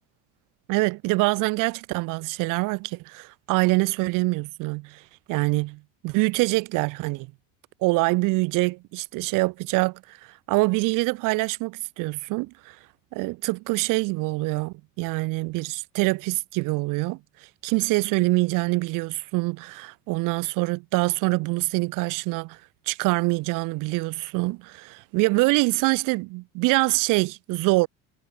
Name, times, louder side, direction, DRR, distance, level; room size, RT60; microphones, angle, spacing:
voice 1, 0.7-5.0 5.3-7.3 7.8-10.2 10.5-12.8 13.1-17.2 17.6-22.6 22.9-27.9, right 24 dB, 70° right, 2.3 m, -25 dB
cardioid pair, 150°, 33 cm